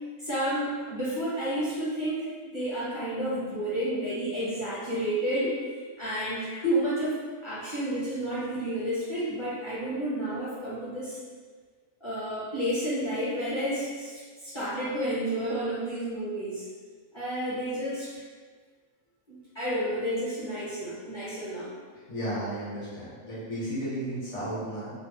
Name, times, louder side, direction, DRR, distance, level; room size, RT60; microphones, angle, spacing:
voice 1, 0.2-5.6 6.0-7.2 7.4-11.2 12.0-16.6 17.1-18.1 19.3-21.7, right 1 dB, 30° left, -10 dB, 0.5 m, -31 dB
voice 2, 22.1-24.9, right 1 dB, 55° left, -9 dB, 1.4 m, -33 dB
3.2 x 2.0 x 2.8 m, 1.5 s
omnidirectional pair, 1.5 m